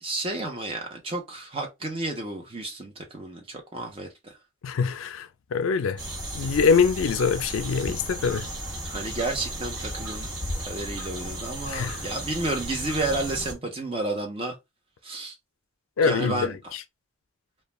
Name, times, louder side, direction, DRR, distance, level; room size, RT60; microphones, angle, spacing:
voice 1, 0.0-4.4 8.8-10.3 10.7-14.6 15.0-15.4 16.0-16.7, right 2 dB, 30° right, 0.7 m, -31 dB
voice 2, 4.6-6.0 6.3-8.5 11.7-12.0 16.0-16.5, left 5 dB, 85° left, 0.4 m, -24 dB
sound 1, 6.0-13.5, right 1 dB, 60° right, 1.2 m, -34 dB
2.3 x 2.2 x 3.0 m
head